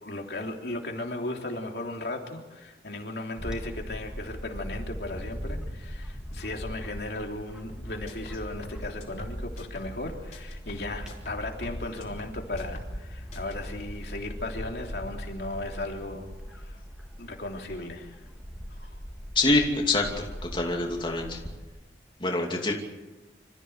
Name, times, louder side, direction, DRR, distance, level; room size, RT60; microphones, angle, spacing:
voice 1, 0.0-16.2 16.5-16.8 17.2-18.2 18.7-18.9, left 2 dB, 65° left, 2 dB, 3.3 m, -36 dB
Bird / Wind, 3.4-21.6, equal, 5° right, 2.9 m, -40 dB
sound 1, 7.7-10.0 10.3-13.0 13.3-13.6, left 1 dB, 45° left, 3.8 m, -44 dB
voice 2, 19.3-20.3 20.5-21.4 22.2-22.7, left 2 dB, 30° left, 1 dB, 2.6 m, -25 dB
27.0 x 15.0 x 8.2 m, 1.2 s
head